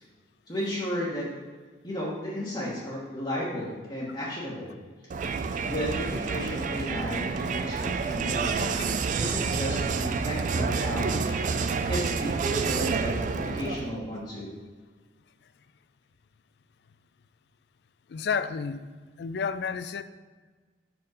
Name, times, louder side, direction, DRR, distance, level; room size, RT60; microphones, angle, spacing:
voice 1, 0.5-1.3 1.8-4.8 5.6-8.8 9.2-11.4 11.9-14.6, equal, 25° left, -7 dB, 1.1 m, -34 dB
Crowd, 5.1-13.9, right 5 dB, 45° right, 0.3 m, -28 dB
voice 2, 18.1-18.8 19.2-20.0, left 6 dB, 60° left, 13 dB, 0.3 m, -31 dB
5.3 x 4.6 x 4.9 m, 1.4 s
head